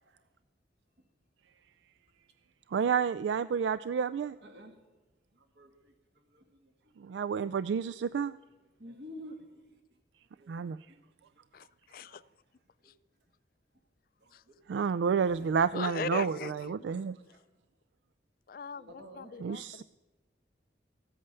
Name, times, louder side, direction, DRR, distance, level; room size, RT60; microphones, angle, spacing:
voice 1, 2.7-4.4 7.0-8.3 10.5-10.8 14.7-17.2 19.4-19.8, right 6 dB, 85° right, 0.3 m, -30 dB
voice 2, 4.4-4.7 5.6-5.9 6.3-6.4 7.9-8.0 8.8-9.6 10.4-10.5 14.2-14.3 15.2-15.5 16.0-16.4 17.1-17.4 18.8-19.3, left 1 dB, 70° right, 2.2 m, -48 dB
voice 3, 11.5-12.2 12.9-13.0 14.3-14.4 15.7-17.1 18.5-19.8, left 6 dB, 50° left, 0.3 m, -40 dB
14.5 x 8.7 x 6.8 m
head